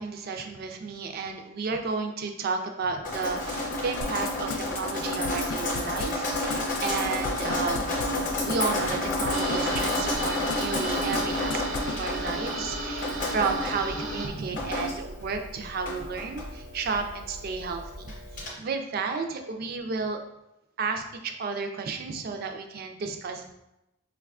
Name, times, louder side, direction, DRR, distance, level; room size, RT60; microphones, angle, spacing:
voice 1, 0.0-8.1 8.4-20.2 20.8-23.5, right 4 dB, 50° right, 5 dB, 0.4 m, -32 dB
Drip, 3.0-18.5, left 1 dB, 40° left, 0.7 m, -31 dB
sound 1, 4.0-9.8 10.1-10.8 11.1-11.2 11.5-12.0, left 5 dB, 80° left, 0.3 m, -35 dB
sound 2, 9.3-14.3, right 1 dB, 85° right, 0.8 m, -34 dB
4.7 x 2.2 x 2.4 m, 0.89 s
head